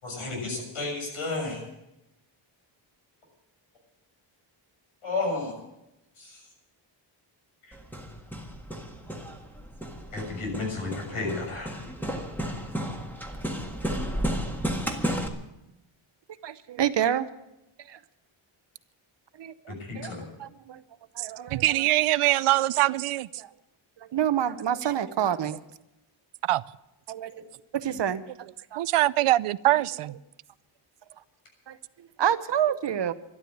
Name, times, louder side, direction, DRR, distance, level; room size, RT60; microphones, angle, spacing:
voice 1, 0.0-1.6 5.0-5.6 6.2-6.5 7.7-7.8 10.1-11.7 19.7-20.3, left 3 dB, 75° left, 6.8 m, -32 dB
Hammer, 7.7-15.3, equal, 5° left, 1.7 m, -33 dB
voice 2, 16.4-17.3 17.9-18.0 19.4-20.1 20.4-20.8 21.1-21.8 23.4-23.5 24.1-25.6 27.1-27.3 27.7-28.2 28.7-28.8 31.7-33.1, right 9 dB, 55° right, 0.9 m, -28 dB
voice 3, 21.2-23.3 26.4-26.6 28.8-30.2, right 15 dB, 90° right, 0.6 m, -23 dB
12.5 x 12.0 x 8.5 m
wide cardioid pair, 140°, 49 cm